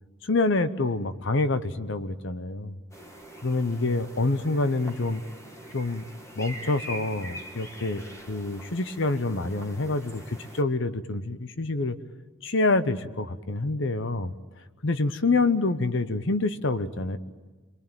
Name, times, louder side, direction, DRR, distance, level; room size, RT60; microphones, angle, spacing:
voice 1, 0.2-2.8 3.4-5.2 5.7-6.1 6.4-12.0 12.4-14.3 14.8-17.2, left 3 dB, 60° left, 12 dB, 0.9 m, -27 dB
sound 1, 2.9-10.6, equal, 15° left, 1.9 m, -43 dB
27.5 x 22.0 x 9.0 m, 1.3 s
head